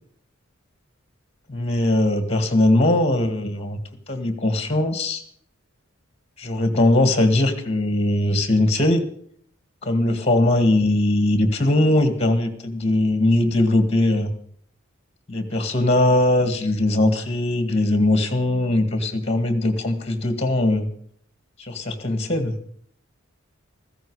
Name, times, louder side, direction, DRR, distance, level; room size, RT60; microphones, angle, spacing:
voice 1, 1.5-3.8 4.1-5.2 6.4-9.0 9.8-14.3 15.3-20.9 21.6-22.6, left 1 dB, 30° left, 8 dB, 2.0 m, -20 dB
15.5 x 14.5 x 4.9 m, 0.62 s
head